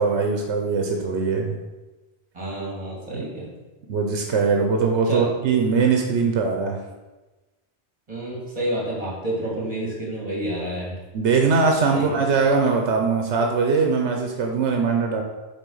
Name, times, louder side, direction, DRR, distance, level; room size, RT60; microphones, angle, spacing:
voice 1, 0.0-1.6 3.9-6.8 11.1-15.2, right 4 dB, 90° right, 2 dB, 1.1 m, -21 dB
voice 2, 2.3-3.5 5.0-5.3 8.1-11.0 11.9-12.3, right 1 dB, 35° right, -4 dB, 2.7 m, -29 dB
7.3 x 4.0 x 5.4 m, 1.1 s
omnidirectional pair, 1.1 m